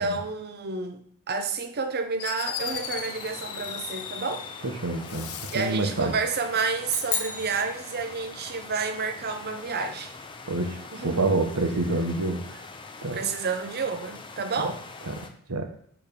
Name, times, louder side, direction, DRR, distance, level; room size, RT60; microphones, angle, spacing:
voice 1, 0.0-4.5 5.5-10.1 10.9-11.5 13.1-14.8, right 4 dB, 45° right, 0.7 m, -30 dB
Fireworks, 1.8-1.9 2.2-4.6 5.0-5.8, left 9 dB, 75° left, 0.6 m, -37 dB
sound 1, 2.6-15.3, left 3 dB, 25° left, 0.5 m, -43 dB
voice 2, 4.6-6.1 10.5-12.6 13.0-13.2 15.0-15.7, right 2 dB, 85° right, 1.0 m, -28 dB
sound 2, 6.9-8.5, left 5 dB, 40° left, 0.9 m, -33 dB
6.9 x 3.3 x 5.2 m
head